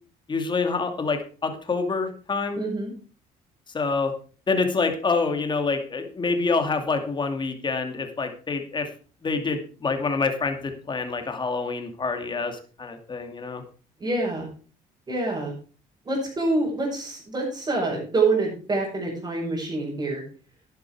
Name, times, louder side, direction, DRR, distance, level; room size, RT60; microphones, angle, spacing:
voice 1, 0.3-2.6 3.7-4.1 4.5-8.9 9.2-13.6, left 4 dB, 30° left, 6 dB, 2.4 m, -26 dB
voice 2, 2.5-2.9 14.0-14.5 15.1-15.5 16.0-20.2, right 3 dB, 25° right, -6 dB, 6.2 m, -26 dB
11.0 x 11.0 x 4.7 m, 0.40 s
cardioid pair, 110°, 16 cm